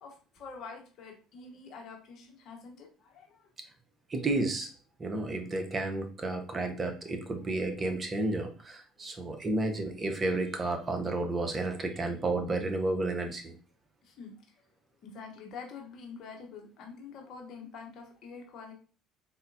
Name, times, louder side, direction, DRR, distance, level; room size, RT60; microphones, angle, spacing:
voice 1, 0.0-3.5 5.9-6.0 6.3-6.5 7.4-7.9 9.0-9.3 14.0-14.3 15.0-18.7, left 5 dB, 55° left, 2 dB, 0.8 m, -47 dB
voice 2, 4.1-4.7 5.0-13.6, right 2 dB, 30° right, 5 dB, 0.7 m, -31 dB
3.8 x 2.1 x 2.5 m, 0.37 s
hypercardioid pair, 60°, 0 cm